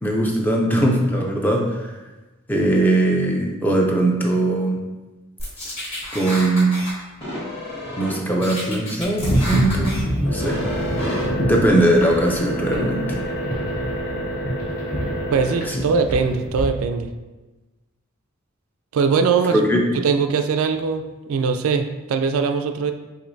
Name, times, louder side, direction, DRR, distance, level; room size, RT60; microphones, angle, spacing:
voice 1, 0.0-1.9 2.5-4.8 6.1-6.8 8.0-10.6 11.4-13.2 15.7-15.8 19.5-19.8, right 1 dB, 10° left, 0 dB, 0.4 m, -20 dB
sound 1, 5.4-6.9 7.2-8.2 8.4-10.0 10.4-11.3, equal, 30° left, 1.3 m, -31 dB
sound 2, 9.2-16.6, equal, 45° left, 1.0 m, -25 dB
voice 2, 15.3-17.1 18.9-19.6 19.9-22.9, right 5 dB, 80° right, 7 dB, 0.3 m, -21 dB
5.0 x 3.0 x 2.6 m, 1.1 s
head